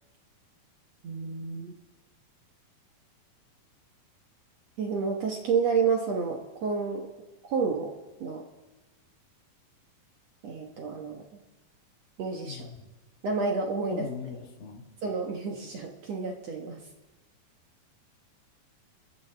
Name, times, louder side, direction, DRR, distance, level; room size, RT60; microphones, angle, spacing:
voice 1, 1.0-1.7 4.8-7.1 7.5-7.9 8.2-8.4 10.4-11.2 12.2-12.7 13.2-14.1 15.0-16.8, right 5 dB, 60° right, 1 dB, 2.0 m, -30 dB
voice 2, 12.4-12.9 13.9-14.9, left 6 dB, 70° left, 3 dB, 3.4 m, -40 dB
29.5 x 14.0 x 3.4 m, 1.2 s
omnidirectional pair, 4.2 m